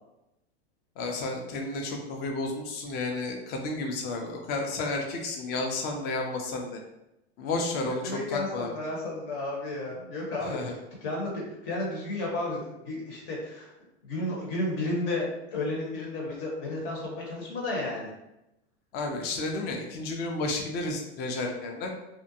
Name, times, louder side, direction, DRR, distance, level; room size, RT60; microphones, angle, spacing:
voice 1, 1.0-6.8 7.4-8.7 10.4-10.7 18.9-21.9, left 2 dB, 30° left, 2 dB, 0.5 m, -32 dB
voice 2, 8.0-13.7 14.0-18.1, left 2 dB, 55° left, -2 dB, 1.0 m, -32 dB
2.5 x 2.1 x 2.7 m, 0.89 s
hypercardioid pair, 120°, 32 cm